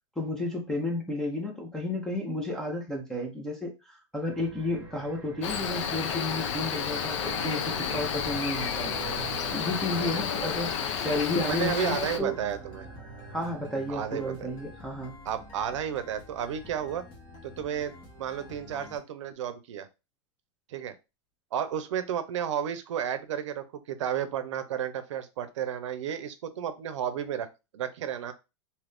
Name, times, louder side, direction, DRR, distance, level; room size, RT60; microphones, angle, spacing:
voice 1, 0.2-8.9 9.5-12.5 13.3-15.1, left 1 dB, 5° left, 0 dB, 0.6 m, -32 dB
sound 1, 4.2-14.8, right 7 dB, 25° right, 0.9 m, -46 dB
Cricket, 5.4-12.2, left 7 dB, 80° left, 0.6 m, -31 dB
sound 2, 7.8-19.0, left 2 dB, 30° left, 0.9 m, -49 dB
voice 2, 11.4-12.9 13.9-14.5 15.3-17.0 17.4-17.9 18.2-19.9 20.7-20.9 21.5-27.5 27.7-28.3, right 9 dB, 85° right, 10 dB, 0.6 m, -32 dB
2.7 x 2.5 x 3.4 m, 0.27 s
supercardioid pair, 150°, 15 cm